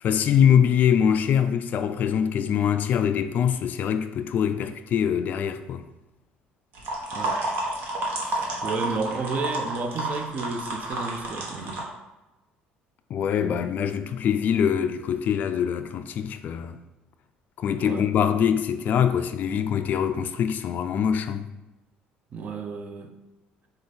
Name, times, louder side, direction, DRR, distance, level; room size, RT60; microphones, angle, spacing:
voice 1, 0.0-5.8 13.1-16.8 17.6-21.5, left 8 dB, 55° left, 0.3 m, -23 dB
sound 1, 6.7-11.8, right 2 dB, 65° right, 1.2 m, -30 dB
voice 2, 7.1-7.4 8.2-11.9 17.8-18.1 22.3-23.1, right 4 dB, 45° right, 0.6 m, -32 dB
4.9 x 2.5 x 4.0 m
supercardioid pair, 90°, 4 cm